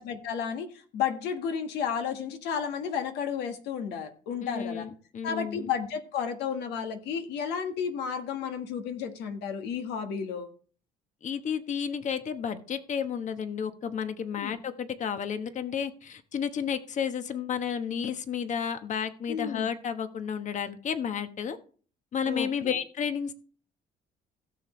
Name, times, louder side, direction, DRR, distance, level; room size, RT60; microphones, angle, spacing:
voice 1, 0.0-4.9 5.2-10.5 14.4-14.6 19.3-19.7 22.2-22.8, left 7 dB, 80° left, 7 dB, 1.6 m, -32 dB
voice 2, 4.4-5.7 11.2-21.6 22.1-23.3, left 7 dB, 45° left, 10 dB, 1.2 m, -32 dB
16.5 x 6.9 x 3.2 m, 0.42 s
cardioid pair, 110°, 17 cm